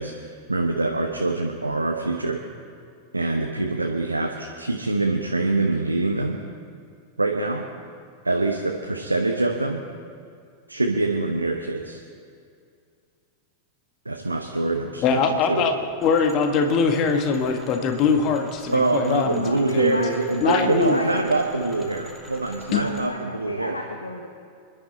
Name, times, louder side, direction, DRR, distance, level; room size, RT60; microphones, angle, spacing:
voice 1, 0.0-2.4 3.1-6.4 7.2-7.6 8.2-9.8 10.7-12.0 14.0-15.0 15.3-15.7 18.7-23.8, right 2 dB, 85° right, 1 dB, 1.1 m, -24 dB
voice 2, 15.0-15.7 16.0-19.9 20.4-21.0 22.7-22.8, left 5 dB, 35° left, 5 dB, 1.6 m, -22 dB
sound 1, 16.0-23.1, equal, 10° left, 2.0 m, -46 dB
voice 3, 19.4-21.4 22.7-24.3, left 2 dB, 80° left, 4 dB, 1.2 m, -33 dB
27.5 x 11.5 x 4.3 m, 2.3 s
figure-of-eight pair, 90°, 0 cm